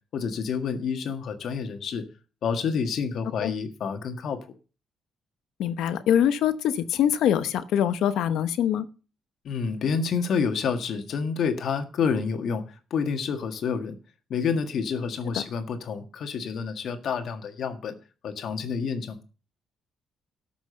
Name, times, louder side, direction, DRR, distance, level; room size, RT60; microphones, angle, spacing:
voice 1, 0.1-2.0 2.4-4.5 9.4-14.0 14.3-18.0 18.2-19.2, left 6 dB, 65° left, 1.7 m, -28 dB
voice 2, 5.6-8.9, left 10 dB, 85° left, 0.9 m, -24 dB
12.5 x 6.1 x 6.8 m
cardioid pair, 90°, 0 cm